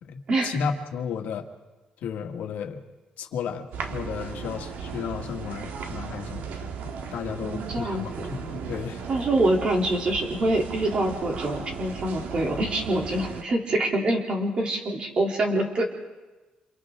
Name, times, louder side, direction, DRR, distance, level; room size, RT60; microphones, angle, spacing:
voice 1, 0.0-1.5 2.0-2.8 3.2-9.0, left 6 dB, 90° left, 4 dB, 1.9 m, -33 dB
sound 1, 3.7-13.4, right 6 dB, 90° right, 1.7 m, -36 dB
voice 2, 7.4-8.3 9.1-15.8, right 1 dB, 35° right, 1 dB, 3.2 m, -25 dB
28.5 x 27.5 x 3.8 m, 1.2 s
cardioid pair, 175°, 3 cm